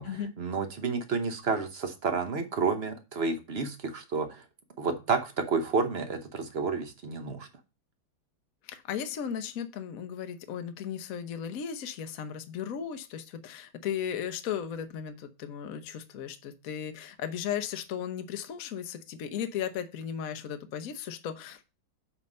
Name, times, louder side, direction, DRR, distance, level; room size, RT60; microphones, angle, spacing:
voice 1, 0.4-4.4 4.8-7.5, right 4 dB, 50° right, 7 dB, 0.8 m, -30 dB
voice 2, 8.6-21.6, left 8 dB, 60° left, 8 dB, 1.0 m, -36 dB
8.6 x 3.6 x 5.3 m, 0.29 s
omnidirectional pair, 2.2 m